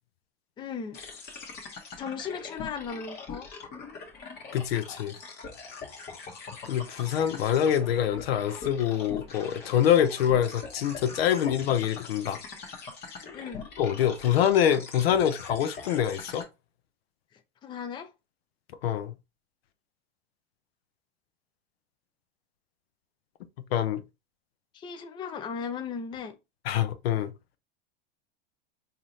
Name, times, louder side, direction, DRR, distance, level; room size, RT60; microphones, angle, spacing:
voice 1, 0.6-1.0 2.0-3.5 13.3-13.6 17.3-18.1 24.7-26.4, left 6 dB, 15° left, 0.4 m, -37 dB
sound 1, 0.9-16.4, left 5 dB, 35° left, 1.1 m, -42 dB
voice 2, 4.5-5.1 6.6-12.4 13.8-16.5 18.8-19.1 23.7-24.0 26.7-27.3, left 10 dB, 85° left, 0.7 m, -25 dB
3.9 x 2.7 x 3.0 m
supercardioid pair, 125°, 29 cm